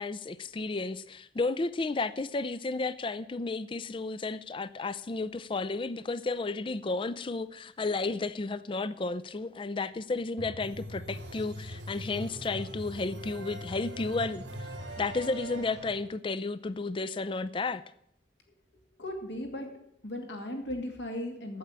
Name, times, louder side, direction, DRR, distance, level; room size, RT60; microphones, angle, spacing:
voice 1, 0.0-14.7 15.0-17.8, left 3 dB, 30° left, 0.4 m, -33 dB
sound 1, 10.4-16.0, right 1 dB, 90° right, 2.0 m, -41 dB
voice 2, 19.0-21.6, left 1 dB, 80° left, 2.5 m, -37 dB
8.6 x 8.1 x 8.7 m
head